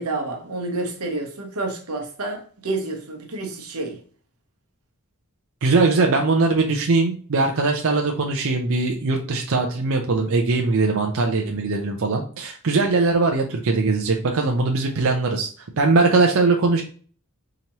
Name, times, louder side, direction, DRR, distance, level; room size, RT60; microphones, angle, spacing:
voice 1, 0.0-4.0, right 2 dB, 85° right, 1.0 m, -29 dB
voice 2, 5.6-15.5 15.8-16.8, right 3 dB, 65° right, 0.5 m, -20 dB
4.9 x 2.9 x 2.9 m
head